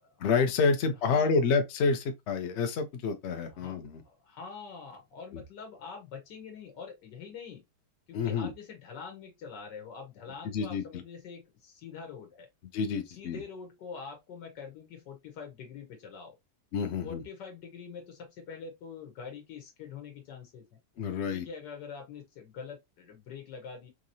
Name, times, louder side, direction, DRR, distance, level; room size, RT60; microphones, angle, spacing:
voice 1, 0.2-4.0 8.1-8.5 10.4-10.8 12.7-13.4 16.7-17.2 21.0-21.5, left 4 dB, 55° left, 0.7 m, -28 dB
voice 2, 0.9-1.3 3.5-7.6 8.1-12.5 13.1-16.4 17.0-20.8 21.3-23.9, left 6 dB, 80° left, 1.6 m, -45 dB
3.7 x 3.0 x 2.6 m
omnidirectional pair, 1.9 m